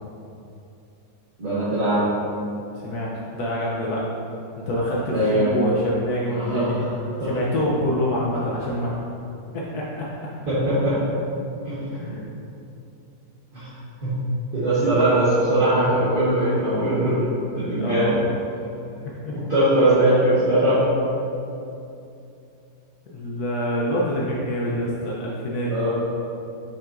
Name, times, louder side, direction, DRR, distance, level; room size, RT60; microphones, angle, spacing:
voice 1, 1.4-2.1 5.1-5.5 6.3-6.8 7.2-7.3 10.5-11.0 11.6-12.1 13.5-13.7 14.0-17.3 17.5-18.1 19.5-20.8 25.7-25.9, right 1 dB, 35° right, -13 dB, 1.6 m, -21 dB
voice 2, 2.8-4.1 4.7-6.9 7.2-9.0 9.5-10.1 11.9-12.3 14.8-14.9 17.8-18.2 19.2-19.3 23.1-25.9, equal, 70° left, -5 dB, 1.3 m, -26 dB
7.0 x 5.9 x 2.6 m, 2.7 s
omnidirectional pair, 1.8 m